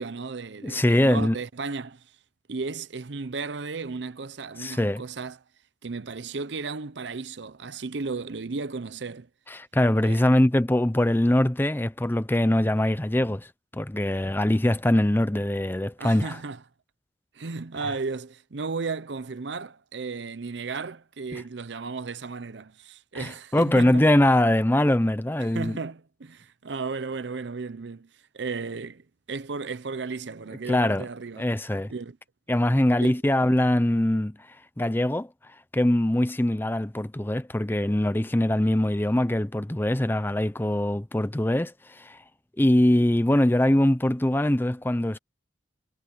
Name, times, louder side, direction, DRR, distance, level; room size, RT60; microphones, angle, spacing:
voice 1, 0.0-2.1 2.5-5.4 5.8-9.3 10.0-10.2 16.0-16.6 17.3-24.1 25.4-28.1 28.3-32.2 33.0-33.1, right 4 dB, 65° right, 0.7 m, -34 dB
voice 2, 0.6-1.4 4.6-5.0 9.5-16.4 21.3-21.4 23.1-25.8 30.7-31.1 31.4-31.9 32.5-34.5 34.8-35.3 35.7-42.2 42.6-45.2, left 1 dB, 10° left, 0.6 m, -23 dB
head